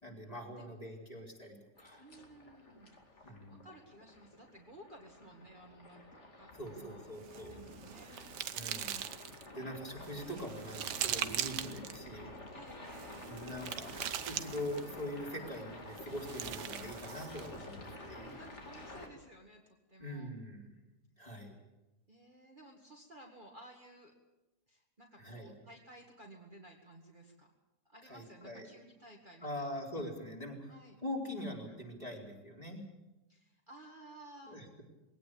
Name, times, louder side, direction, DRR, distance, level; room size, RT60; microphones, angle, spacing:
voice 1, 0.0-2.0 3.2-3.6 6.6-7.7 8.5-9.0 9.5-12.4 13.3-18.4 20.0-20.8 21.2-21.5 25.2-25.5 28.0-28.7 29.4-30.7 31.0-32.8 34.4-34.8, equal, 20° left, -2 dB, 4.7 m, -43 dB
sound 1, 1.8-19.1, left 2 dB, 45° left, 2.9 m, -50 dB
voice 2, 2.0-3.4 3.6-8.3 11.5-11.7 12.5-13.3 18.0-20.3 22.1-24.1 24.7-27.5 27.9-29.7 30.7-31.0 31.7-31.8 33.3-34.6, right 1 dB, 30° right, 0 dB, 2.2 m, -56 dB
sound 2, 7.2-9.5 10.0-12.0 12.9-15.0 16.0-17.5, right 10 dB, 90° right, 1.6 m, -40 dB
21.0 x 17.5 x 8.7 m, 0.99 s
omnidirectional pair, 1.8 m